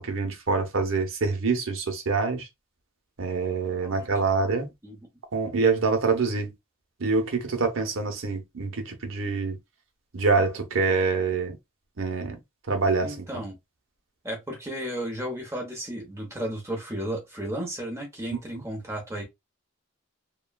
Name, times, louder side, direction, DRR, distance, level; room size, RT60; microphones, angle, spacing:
voice 1, 0.0-2.5 3.2-4.7 5.3-6.5 7.0-9.6 10.1-11.5 12.0-12.3 12.7-13.3, right 4 dB, 75° right, 0.8 m, -25 dB
voice 2, 13.0-13.6 14.2-19.2, right 1 dB, 15° right, 0.8 m, -34 dB
3.0 x 2.2 x 2.2 m
head